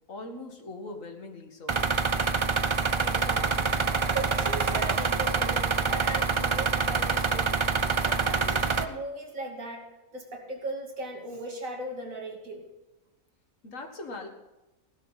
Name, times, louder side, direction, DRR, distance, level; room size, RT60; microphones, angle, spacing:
voice 1, 0.1-1.8 13.6-14.3, left 2 dB, 70° left, 5 dB, 2.1 m, -40 dB
sound 1, 1.7-8.8, right 4 dB, 35° right, 0.4 m, -26 dB
voice 2, 3.0-3.8 4.1-7.6 8.0-9.8 10.1-12.7, right 2 dB, 85° right, 1 dB, 2.9 m, -37 dB
16.0 x 12.5 x 4.1 m, 1.0 s
omnidirectional pair, 1.4 m